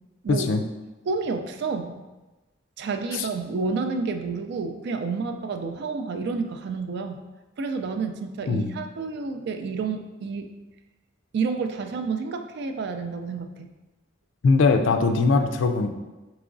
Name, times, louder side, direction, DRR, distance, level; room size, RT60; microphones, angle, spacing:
voice 1, 0.3-0.6 3.1-3.3 8.5-8.7 14.4-15.9, left 4 dB, 80° left, 6 dB, 0.4 m, -21 dB
voice 2, 1.1-2.0 2.8-7.2 7.6-10.5 11.3-13.7, right 4 dB, 60° right, 6 dB, 0.4 m, -29 dB
4.7 x 3.0 x 2.5 m, 1.1 s
head